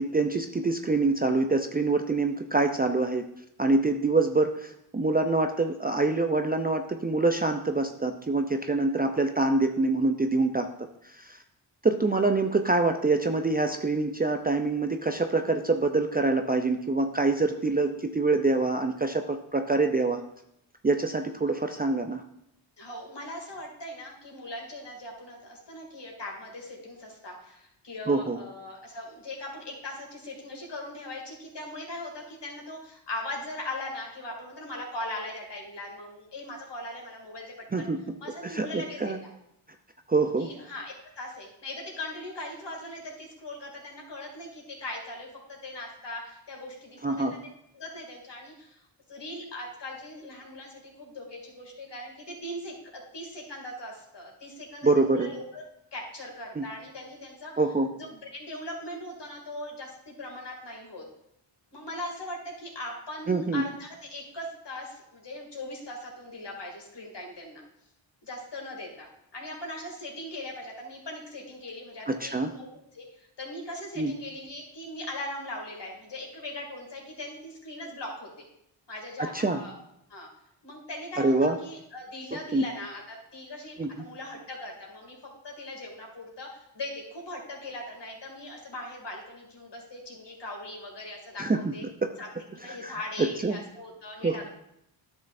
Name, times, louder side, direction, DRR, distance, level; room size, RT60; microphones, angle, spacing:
voice 1, 0.0-3.2 3.6-10.7 11.1-11.4 11.8-20.2 20.8-22.2 28.1-28.4 37.7-38.0 38.4-39.2 40.1-40.5 47.0-47.3 54.8-55.3 56.6-56.7 57.6-57.9 63.3-63.6 72.1-72.5 74.0-74.1 79.2-79.6 81.2-81.6 82.5-82.6 83.8-83.9 91.4-91.7 92.7-93.6 94.2-94.5, right 3 dB, 20° right, 5 dB, 0.5 m, -25 dB
voice 2, 22.8-37.9 38.2-39.1 40.4-47.4 47.7-55.6 55.9-57.5 57.9-61.0 61.7-67.6 68.2-72.7 72.9-78.5 78.9-79.8 80.1-80.3 80.6-91.8 92.2-94.5, left 1 dB, 55° left, 0 dB, 2.7 m, -40 dB
10.5 x 6.3 x 2.6 m, 0.77 s
supercardioid pair, 50°, 50 cm